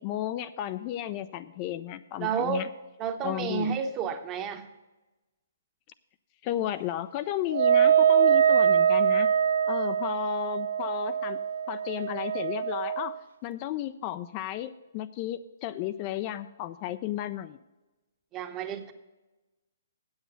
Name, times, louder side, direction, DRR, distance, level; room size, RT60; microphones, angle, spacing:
voice 1, 0.0-2.7 3.2-3.8 6.4-9.3 9.7-11.4 11.7-17.6, left 13 dB, 35° left, 12 dB, 0.3 m, -33 dB
voice 2, 2.2-2.6 3.0-4.7 18.3-18.9, right 7 dB, 25° right, 8 dB, 0.9 m, -31 dB
Wind instrument woodwind instrument, 7.5-13.2, right 8 dB, 65° right, 0.3 m, -23 dB
8.0 x 7.9 x 7.8 m, 1.1 s
figure-of-eight pair, 130°, 0 cm